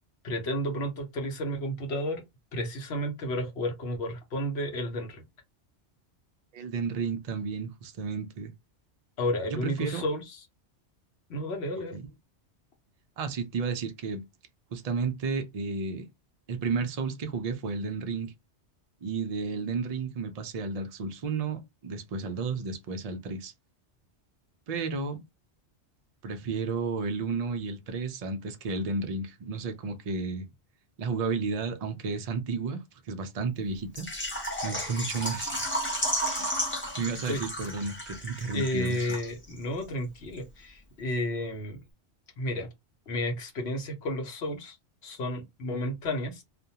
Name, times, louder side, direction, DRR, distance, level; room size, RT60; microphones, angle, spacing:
voice 1, 0.2-2.2 2.5-5.2 9.2-10.4 11.3-12.0 37.3-37.4 38.5-41.8 42.4-42.7 43.1-44.8 45.0-46.4, left 1 dB, 65° left, 1.0 m, -32 dB
voice 2, 6.5-8.5 9.5-10.1 11.9-12.0 13.2-14.2 14.7-16.1 16.5-18.3 19.0-23.5 24.7-25.2 26.2-30.5 31.0-34.1 34.6-35.8 36.4-36.6 36.9-39.1, right 4 dB, 65° right, 0.3 m, -32 dB
Water / Liquid, 34.0-39.6 39.8-39.9 40.4-40.5, equal, 15° left, 0.5 m, -33 dB
2.4 x 2.1 x 2.8 m
omnidirectional pair, 1.2 m